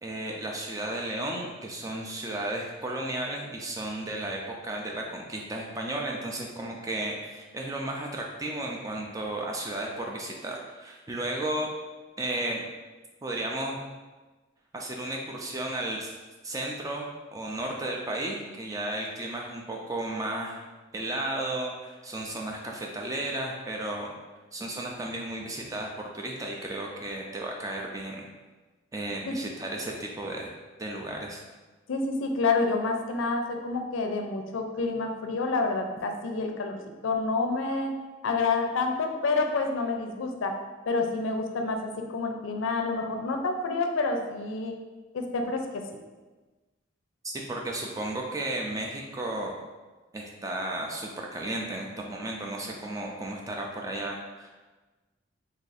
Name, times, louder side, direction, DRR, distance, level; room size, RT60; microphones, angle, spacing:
voice 1, 0.0-11.7 12.2-12.6 13.2-13.8 14.7-16.1 16.4-20.6 20.9-24.1 24.5-28.3 28.9-30.5 30.8-31.4 47.3-49.5 50.1-54.5, right 1 dB, 15° right, 0 dB, 0.3 m, -34 dB
voice 2, 31.9-37.9 38.2-40.6 40.9-44.8 45.1-45.8, left 3 dB, 80° left, 4 dB, 0.4 m, -28 dB
2.7 x 2.5 x 4.0 m, 1.3 s
head